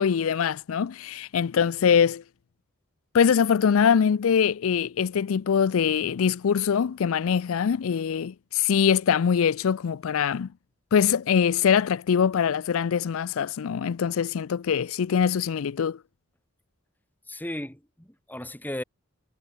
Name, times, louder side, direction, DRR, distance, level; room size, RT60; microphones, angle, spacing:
voice 1, 0.0-2.2 3.1-10.5 10.9-16.0, left 7 dB, 75° left, 0.4 m, -23 dB
voice 2, 17.3-18.8, left 1 dB, 10° left, 2.8 m, -35 dB
head